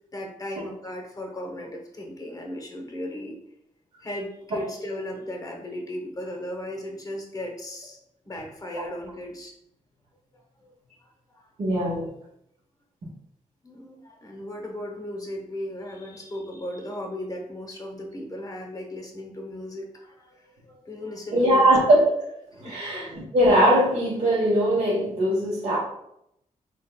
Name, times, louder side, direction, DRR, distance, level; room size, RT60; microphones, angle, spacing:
voice 1, 0.1-3.4 4.0-8.0 8.2-9.5 10.3-10.7 11.0-11.5 13.6-21.6 22.6-22.8, left 1 dB, 25° left, 1 dB, 0.8 m, -36 dB
voice 2, 11.6-12.1 21.3-22.1 22.6-25.8, right 1 dB, 60° right, -7 dB, 1.0 m, -20 dB
4.5 x 3.3 x 2.2 m, 0.79 s
wide cardioid pair, 135°, 14 cm